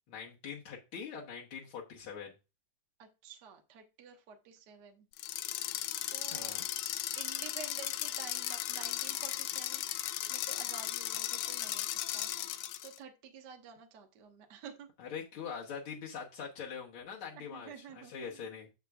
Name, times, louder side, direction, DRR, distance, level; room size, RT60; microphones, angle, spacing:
voice 1, 0.1-2.3 6.3-6.6 15.0-18.7, left 6 dB, 65° left, -2 dB, 1.3 m, -43 dB
voice 2, 3.0-5.1 6.1-6.6 7.2-9.9 10.3-12.3 12.8-14.9 17.3-18.5, right 7 dB, 65° right, 4 dB, 1.0 m, -50 dB
sound 1, 5.1-13.0, left 14 dB, 80° left, 1.9 m, -36 dB
8.1 x 7.2 x 2.3 m, 0.28 s
omnidirectional pair, 3.7 m